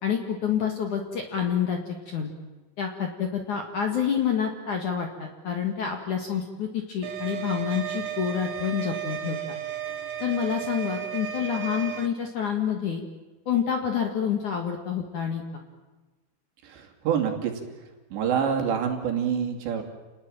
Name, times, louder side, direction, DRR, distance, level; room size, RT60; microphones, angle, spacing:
voice 1, 0.0-2.3 2.8-9.6 10.2-13.0 13.5-15.4, left 8 dB, 50° left, 3 dB, 2.6 m, -28 dB
sound 1, 7.0-12.1, right 10 dB, 80° right, 4.0 m, -34 dB
voice 2, 16.6-17.6 18.1-19.8, right 7 dB, 65° right, 3 dB, 4.7 m, -26 dB
29.5 x 19.5 x 9.1 m, 1.2 s
omnidirectional pair, 5.8 m